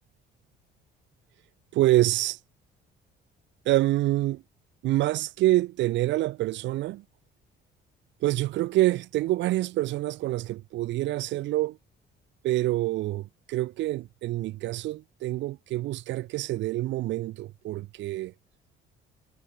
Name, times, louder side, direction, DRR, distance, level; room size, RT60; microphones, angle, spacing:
voice 1, 1.7-2.4 3.6-4.4 4.8-7.0 8.2-11.8 12.4-18.3, right 16 dB, 80° right, 1.3 m, -26 dB
cardioid pair, 160°, 19 cm